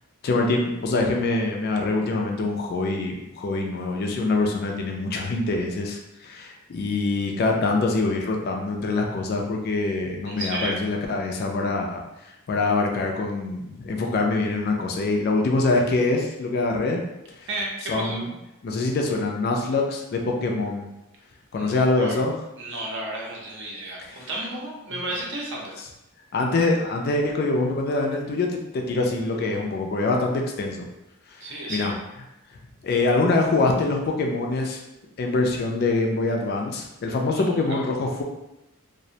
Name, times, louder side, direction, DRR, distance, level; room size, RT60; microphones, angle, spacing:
voice 1, 0.2-17.0 17.4-17.5 17.9-18.3 18.6-20.9 21.5-22.3 24.0-24.3 26.3-30.9 31.3-31.9 32.8-34.8 35.2-38.2, left 3 dB, 45° left, 1 dB, 0.3 m, -24 dB
voice 2, 10.2-10.8 17.5-18.2 21.6-22.2 22.6-25.7 31.4-32.0 37.4-37.8, right 2 dB, 55° right, -2 dB, 0.5 m, -33 dB
2.4 x 2.0 x 2.7 m, 0.90 s
head